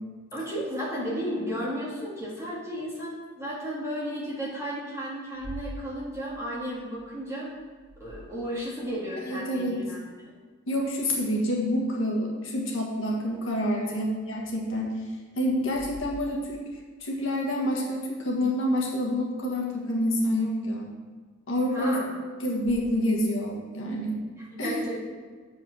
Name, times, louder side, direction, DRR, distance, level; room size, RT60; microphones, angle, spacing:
voice 1, 0.3-7.5 8.0-10.0 13.7-14.0 21.7-22.1 24.4-24.9, equal, 15° right, -6 dB, 2.0 m, -33 dB
sound 1, 5.3-8.8 13.3-13.4 14.3-14.4 15.6-16.9 22.6-22.7, left 1 dB, 45° right, 1.9 m, -45 dB
voice 2, 9.2-9.8 10.7-14.9 15.3-16.6 17.0-20.9 21.5-22.0 22.4-24.2 24.6-24.7, left 1 dB, 75° left, -2 dB, 1.6 m, -27 dB
7.6 x 4.8 x 6.3 m, 1.5 s
head